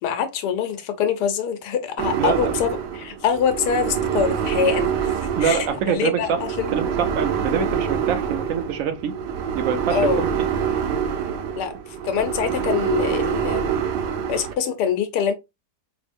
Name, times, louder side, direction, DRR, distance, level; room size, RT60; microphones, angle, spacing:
voice 1, 0.0-6.8 9.9-10.3 11.6-11.7 12.0-13.7 14.3-15.3, left 7 dB, 80° left, 1.3 m, -24 dB
sound 1, 2.0-14.5, right 8 dB, 90° right, 1.3 m, -26 dB
voice 2, 2.2-2.5 5.4-6.4 6.7-9.1 9.5-10.5, right 7 dB, 60° right, 1.0 m, -25 dB
4.2 x 2.9 x 2.5 m
omnidirectional pair, 1.8 m